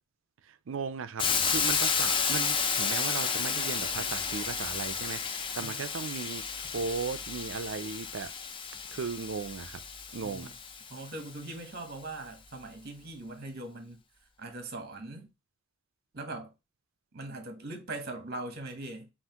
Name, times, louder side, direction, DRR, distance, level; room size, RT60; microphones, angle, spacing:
voice 1, 0.4-8.3 8.9-9.8 10.1-10.5, right 5 dB, 65° right, 0.4 m, -37 dB
Hiss, 1.2-11.1, left 6 dB, 25° left, 0.4 m, -32 dB
voice 2, 10.9-14.0 14.4-15.3 16.1-16.5 17.1-19.1, right 2 dB, 50° right, 1.0 m, -41 dB
5.7 x 2.5 x 2.8 m
head